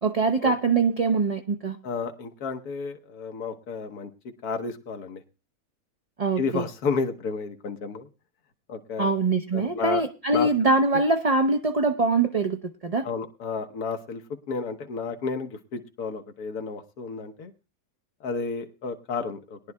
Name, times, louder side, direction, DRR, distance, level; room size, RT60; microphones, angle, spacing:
voice 1, 0.0-1.8 6.2-6.7 9.0-13.1, right 3 dB, 50° right, 5 dB, 0.4 m, -23 dB
voice 2, 1.8-4.1 4.4-5.2 6.4-8.1 8.7-9.1 9.5-10.0 10.3-10.5 10.9-11.0 13.0-17.5 18.2-19.6, left 4 dB, 90° left, 5 dB, 1.5 m, -32 dB
21.5 x 10.5 x 2.2 m, 0.30 s
omnidirectional pair, 1.6 m